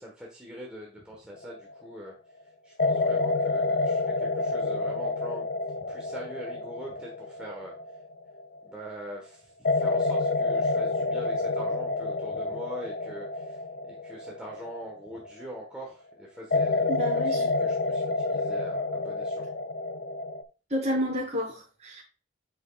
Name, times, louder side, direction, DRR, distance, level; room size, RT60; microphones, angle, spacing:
voice 1, 0.0-2.2 2.4-5.5 5.9-8.0 8.6-16.9 17.3-19.5, equal, 5° right, -3 dB, 1.2 m, -42 dB
sound 1, 1.4-1.9 2.8-8.7 9.6-15.6 16.5-20.4, left 3 dB, 50° left, 0.5 m, -28 dB
voice 2, 16.9-17.4 20.7-22.0, equal, 35° right, -3 dB, 3.4 m, -30 dB
8.1 x 6.1 x 2.3 m, 0.36 s
head